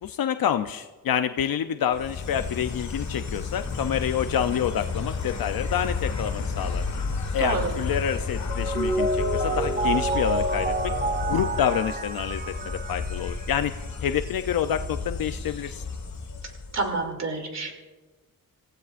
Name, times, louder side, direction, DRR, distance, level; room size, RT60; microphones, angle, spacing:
voice 1, 0.0-6.8 7.3-10.9 11.3-13.7 14.0-15.8, left 9 dB, 75° left, 8 dB, 0.6 m, -28 dB
Insect, 1.9-17.0, left 4 dB, 50° left, 1.6 m, -32 dB
voice 2, 7.4-7.7 16.7-17.8, right 3 dB, 50° right, 3 dB, 2.8 m, -28 dB
Mallet percussion, 8.5-13.5, right 2 dB, 25° right, 0.5 m, -28 dB
27.5 x 15.5 x 2.5 m, 1.3 s
wide cardioid pair, 135°, 35 cm